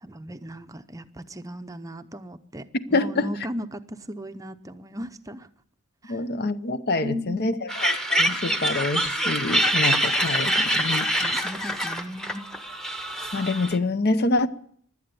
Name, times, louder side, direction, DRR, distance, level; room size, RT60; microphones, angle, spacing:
voice 1, 0.0-5.5 6.0-6.2 7.0-7.6 11.2-12.4, equal, 15° right, 0.7 m, -36 dB
voice 2, 2.9-3.3 6.1-11.1 13.3-14.5, left 2 dB, 45° left, 0.8 m, -26 dB
sound 1, 7.7-13.8, equal, ahead, 1.0 m, -25 dB
16.5 x 12.0 x 6.8 m
head